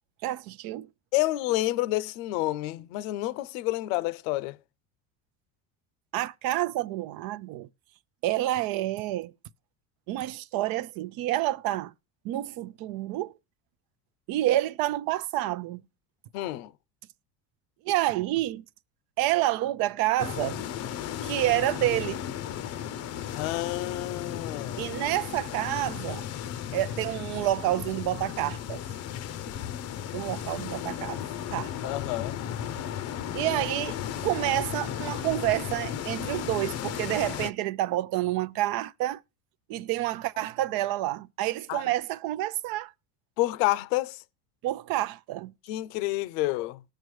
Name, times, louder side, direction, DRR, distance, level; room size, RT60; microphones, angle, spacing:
voice 1, 0.2-0.9 6.1-7.7 8.2-9.3 10.1-11.9 12.2-13.3 14.3-15.8 17.8-18.6 19.2-20.6 21.2-22.2 24.8-26.2 26.7-28.8 30.1-31.2 31.5-31.9 33.3-39.2 39.7-42.9 44.6-45.5, right 15 dB, 60° right, 0.6 m, -28 dB
voice 2, 1.1-4.6 16.3-16.7 23.3-24.9 31.8-32.4 41.7-41.8 43.4-44.2 45.7-46.8, left 17 dB, 80° left, 0.6 m, -29 dB
sound 1, 20.2-37.5, left 10 dB, 40° left, 0.6 m, -35 dB
19.5 x 6.6 x 3.1 m
supercardioid pair, 115°, 39 cm